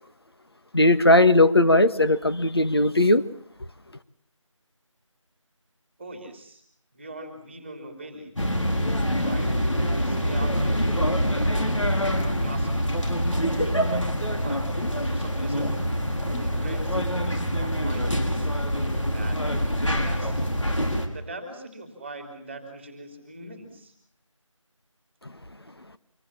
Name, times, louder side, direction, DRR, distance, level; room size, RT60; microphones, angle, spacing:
voice 1, 0.7-3.2, left 2 dB, 50° left, 11 dB, 1.7 m, -18 dB
voice 2, 6.0-6.6 6.9-8.3 9.0-9.5 10.0-10.9 12.1-13.7 14.4-14.6 14.9-15.8 16.1-18.5 19.1-20.4 21.1-23.9, right 2 dB, 5° right, 5 dB, 2.9 m, -41 dB
sound 1, 8.4-21.1, equal, 70° left, 5.8 m, -25 dB
26.0 x 25.0 x 7.4 m, 0.63 s
figure-of-eight pair, 170°, 17 cm